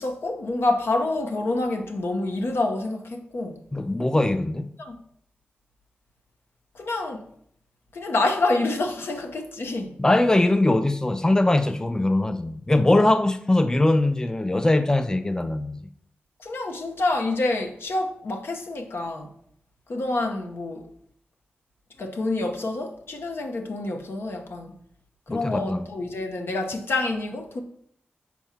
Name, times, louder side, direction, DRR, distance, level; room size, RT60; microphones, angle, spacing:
voice 1, 0.0-3.6 4.8-5.0 6.7-7.3 7.9-10.0 16.4-19.3 19.9-20.9 22.0-24.7 25.3-27.6, left 2 dB, 75° left, 0.9 m, -27 dB
voice 2, 3.7-4.8 10.0-15.8 25.3-25.9, left 2 dB, 15° left, 0.4 m, -21 dB
4.6 x 4.3 x 5.7 m
cardioid pair, 50°, 4 cm